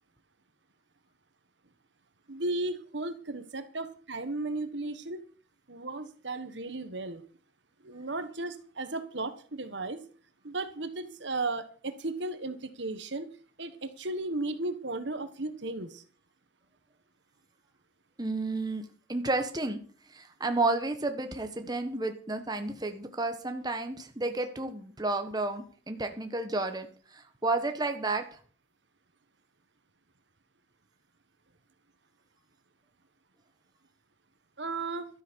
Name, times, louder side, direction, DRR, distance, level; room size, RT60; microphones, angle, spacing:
voice 1, 2.3-5.2 5.7-7.2 7.8-10.0 10.4-13.3 13.6-16.0 34.6-35.1, right 2 dB, 65° right, 10 dB, 1.4 m, -35 dB
voice 2, 18.2-18.8 19.1-19.8 20.1-26.9 27.1-28.2, right 2 dB, 20° right, 6 dB, 1.3 m, -31 dB
13.0 x 9.2 x 6.3 m, 0.42 s
head